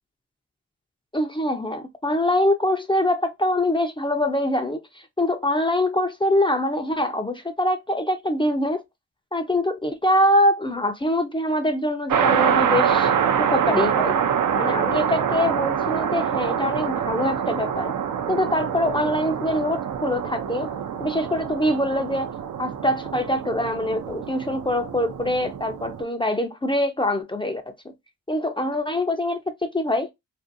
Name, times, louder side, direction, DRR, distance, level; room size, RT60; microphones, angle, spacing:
voice 1, 1.1-4.8 5.2-8.8 9.3-13.1 13.4-14.2 14.6-17.9 18.3-20.7 21.0-22.3 22.6-27.7 28.3-30.1, left 1 dB, 15° left, 0.4 m, -24 dB
sound 1, 12.1-26.0, right 8 dB, 60° right, 0.5 m, -25 dB
2.6 x 2.5 x 2.5 m
cardioid pair, 60°, 35 cm